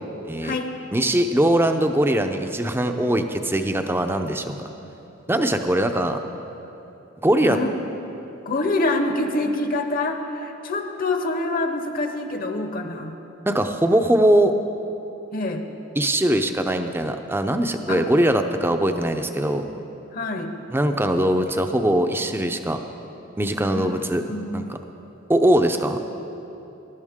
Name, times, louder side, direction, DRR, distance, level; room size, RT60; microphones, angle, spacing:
voice 1, 0.9-4.7 5.3-6.2 7.2-7.6 13.5-14.5 16.0-19.6 20.7-22.8 23.4-24.2 24.5-24.6 25.3-26.0, right 1 dB, 10° right, 6 dB, 0.5 m, -21 dB
voice 2, 7.4-7.7 8.4-13.2 15.3-15.6 17.9-18.0 20.1-20.5 23.7-24.6, left 2 dB, 45° left, 5 dB, 0.9 m, -26 dB
19.5 x 11.5 x 3.6 m, 2.9 s
head